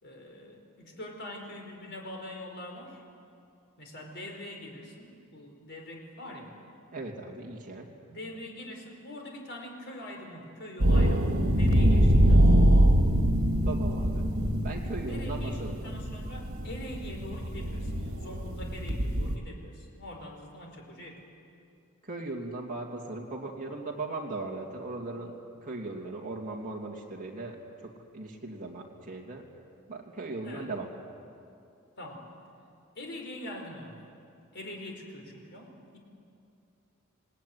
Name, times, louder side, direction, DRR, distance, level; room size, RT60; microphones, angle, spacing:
voice 1, 0.0-3.0 3.8-6.5 8.1-12.7 15.1-21.2 30.4-30.7 32.0-32.3 32.9-34.0 34.5-36.0, left 1 dB, 55° left, 2 dB, 4.7 m, -43 dB
voice 2, 6.9-7.9 13.7-14.4 14.6-15.9 22.0-25.3 25.6-29.4 29.9-30.9, right 2 dB, 40° right, -1 dB, 2.8 m, -38 dB
sound 1, 10.8-19.3, equal, 75° right, 2.4 m, -24 dB
28.0 x 18.5 x 9.6 m, 2.6 s
head